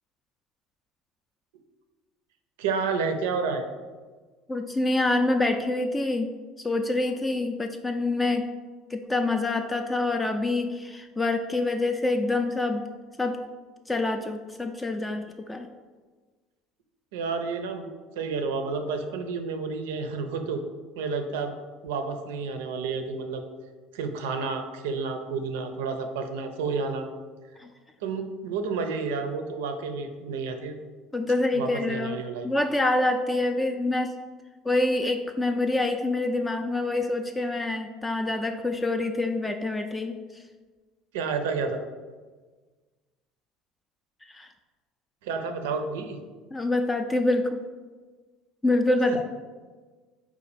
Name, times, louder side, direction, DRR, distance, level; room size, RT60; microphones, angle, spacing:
voice 1, 2.6-3.7 17.1-20.6 21.0-21.5 21.8-23.4 23.9-27.1 28.0-30.8 31.5-32.5 41.1-41.8 45.2-46.2 49.1-49.2, right 4 dB, 85° right, 6 dB, 0.4 m, -30 dB
voice 2, 4.5-6.3 6.6-8.5 8.9-12.8 13.2-13.4 13.9-15.7 27.6-27.7 31.1-34.1 34.6-40.2 44.3-44.5 46.5-47.6 48.6-49.2, left 2 dB, 15° left, 5 dB, 0.3 m, -26 dB
4.2 x 2.4 x 4.0 m, 1.4 s
supercardioid pair, 85°, 0 cm